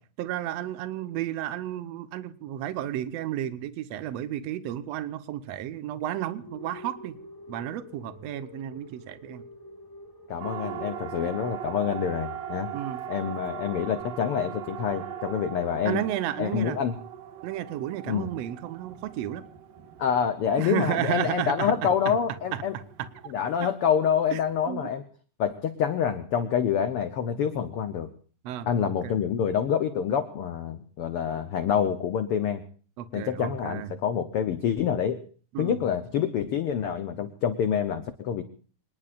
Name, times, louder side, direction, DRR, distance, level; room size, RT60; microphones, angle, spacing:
voice 1, 0.2-7.2 7.5-9.4 12.7-13.1 15.9-16.8 17.4-19.4 20.6-22.2 22.5-23.1 24.3-24.4 24.7-24.9 28.4-29.1 33.0-33.9 35.5-35.8, right 12 dB, 70° right, 13 dB, 1.7 m, -32 dB
sound 1, 6.4-15.9, left 2 dB, 15° left, 0.7 m, -48 dB
voice 2, 10.3-12.7 13.1-16.0 16.4-16.9 18.1-18.3 20.0-22.7 23.3-25.0 25.4-28.1 28.7-32.6 33.1-35.2 35.6-38.4, left 8 dB, 85° left, 10 dB, 1.2 m, -27 dB
Siren, 10.4-24.7, right 10 dB, 90° right, 3.2 m, -40 dB
25.5 x 20.0 x 2.5 m, 0.41 s
omnidirectional pair, 3.8 m